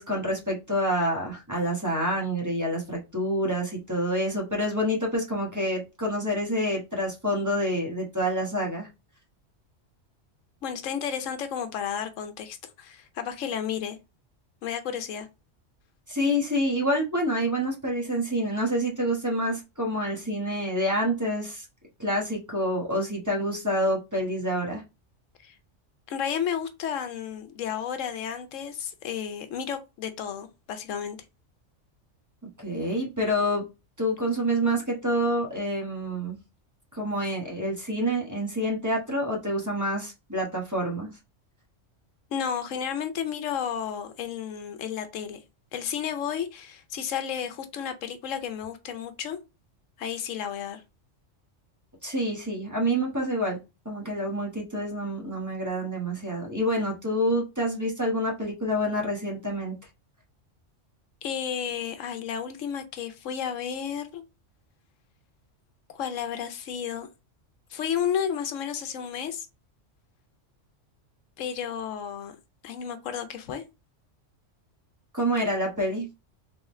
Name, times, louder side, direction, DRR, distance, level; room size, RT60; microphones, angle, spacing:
voice 1, 0.0-8.9 16.1-21.6 22.0-24.8 32.6-33.6 34.0-36.4 36.9-41.1 52.0-53.6 53.8-59.7 75.1-76.1, equal, 15° right, 1.2 m, -27 dB
voice 2, 10.6-14.0 14.6-15.3 25.4-25.5 26.1-31.2 42.3-45.4 45.7-49.4 50.0-50.8 61.2-64.2 65.9-67.1 67.7-69.5 71.4-72.4 72.6-73.6, left 8 dB, 90° left, 1.1 m, -32 dB
3.7 x 3.6 x 3.1 m
omnidirectional pair, 1.3 m